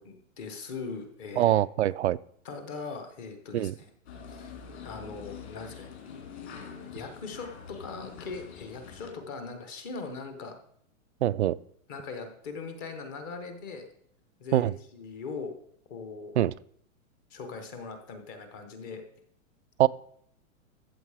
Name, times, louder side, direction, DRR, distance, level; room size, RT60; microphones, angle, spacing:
voice 1, 0.0-1.5 2.4-3.9 4.3-5.9 6.9-10.5 11.9-13.9 14.4-15.5 15.9-16.4 17.3-19.0, left 4 dB, 15° left, 0.7 m, -40 dB
voice 2, 1.4-2.2 3.5-3.7 11.2-11.6 14.5-14.7 16.4-16.5 19.8-19.9, right 13 dB, 55° right, 0.4 m, -23 dB
sound 1, 4.1-9.1, left 6 dB, 50° left, 3.1 m, -45 dB
14.0 x 7.5 x 4.8 m
hypercardioid pair, 175°, 41 cm